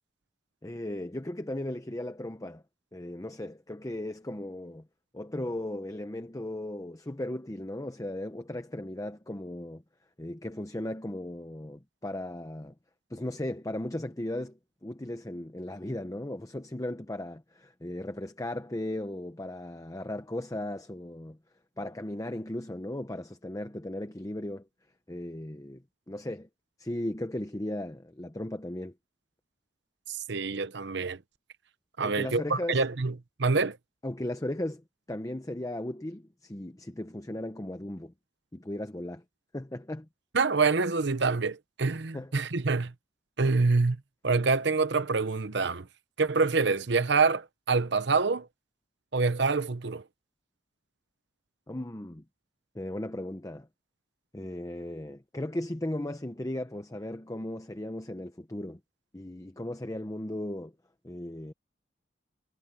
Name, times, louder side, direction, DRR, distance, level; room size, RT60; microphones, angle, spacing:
voice 1, 0.6-2.6 2.9-4.9 5.1-9.8 10.2-12.7 13.1-21.4 21.8-24.7 25.1-26.5 26.8-28.9 32.0-32.8 34.0-38.1 38.5-39.2 39.5-40.1 42.1-42.3 51.7-52.2 52.7-53.7 54.3-58.8 59.1-60.7 61.0-61.5, left 1 dB, 20° left, 0.8 m, -36 dB
voice 2, 30.1-31.2 32.0-33.1 33.4-33.8 40.3-42.9 43.4-44.0 44.2-45.9 46.2-48.5 49.1-50.0, right 4 dB, 60° right, 0.9 m, -26 dB
head